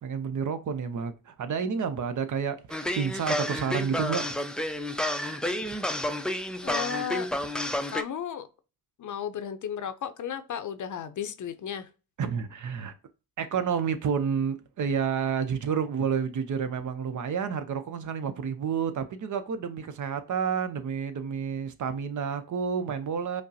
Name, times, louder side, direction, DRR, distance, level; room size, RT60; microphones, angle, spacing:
voice 1, 0.0-4.3 12.2-12.9 13.4-23.4, right 6 dB, 55° right, 0.6 m, -30 dB
sound 1, 2.7-8.0, left 1 dB, ahead, 0.4 m, -30 dB
voice 2, 6.6-7.3 7.9-8.5 9.0-11.9, left 8 dB, 55° left, 0.6 m, -34 dB
5.0 x 2.0 x 2.6 m
cardioid pair, 60°, 36 cm